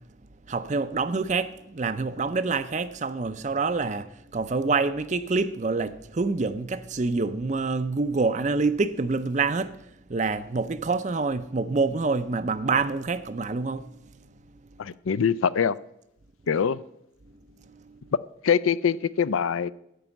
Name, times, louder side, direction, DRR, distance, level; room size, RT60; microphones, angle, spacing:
voice 1, 0.5-9.8 10.1-13.9, right 4 dB, 35° right, 0.5 m, -26 dB
voice 2, 14.8-15.7 16.5-16.8 18.4-19.7, left 7 dB, 85° left, 0.4 m, -23 dB
9.3 x 8.9 x 7.0 m
head